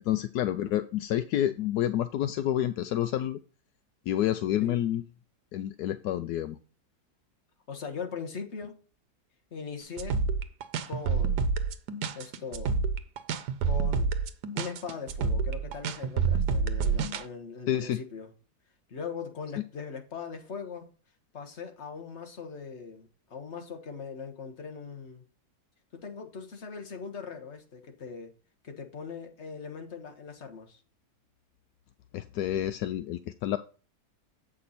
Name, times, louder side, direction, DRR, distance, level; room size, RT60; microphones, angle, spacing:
voice 1, 0.0-3.4 4.1-5.0 5.5-6.6 17.7-18.0 32.1-33.6, left 12 dB, 80° left, 1.1 m, -29 dB
voice 2, 7.7-8.8 9.5-10.2 10.9-11.5 12.1-12.8 13.6-14.1 14.5-18.3 18.9-20.9 21.3-25.2 25.9-28.3 28.6-30.8, left 5 dB, 45° left, 1.6 m, -40 dB
sound 1, 10.0-17.2, right 5 dB, 85° right, 1.4 m, -28 dB
8.1 x 5.3 x 4.1 m
omnidirectional pair, 1.7 m